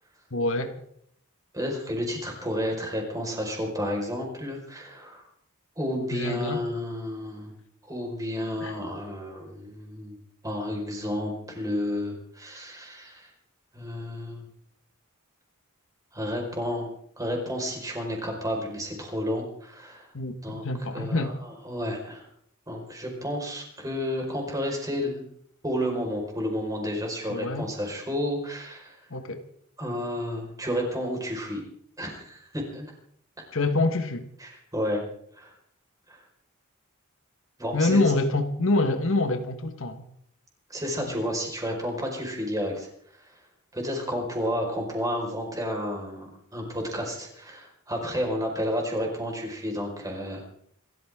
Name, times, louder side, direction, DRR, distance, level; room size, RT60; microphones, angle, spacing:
voice 1, 0.3-0.7 6.1-6.6 8.6-8.7 20.1-21.3 27.3-27.7 29.1-29.4 33.5-34.3 37.7-40.0, left 2 dB, 65° left, 1.4 m, -26 dB
voice 2, 1.5-5.3 5.7-7.5 7.8-10.2 10.4-13.3 13.7-14.5 16.1-16.9 17.2-20.1 20.4-20.7 20.9-22.3 22.7-25.3 25.6-29.1 29.8-31.6 32.0-32.9 34.4-35.1 35.3-35.5 36.1-36.2 37.6-38.1 40.7-43.5 43.7-50.5, equal, 15° right, 4.9 m, -31 dB
27.0 x 13.5 x 3.7 m
head